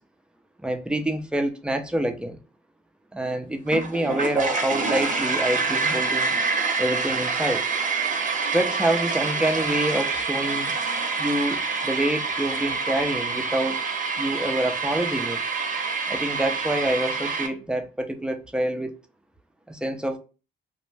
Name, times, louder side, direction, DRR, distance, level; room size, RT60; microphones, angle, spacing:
voice 1, 0.6-2.4 3.1-6.3 6.8-7.6 8.5-10.7 11.2-13.8 14.2-15.4 16.1-19.0 19.7-20.2, right 1 dB, 5° right, 0.5 m, -26 dB
sound 1, 3.7-17.5, right 4 dB, 40° right, 0.7 m, -26 dB
2.5 x 2.0 x 3.2 m
cardioid pair, 90°, 20 cm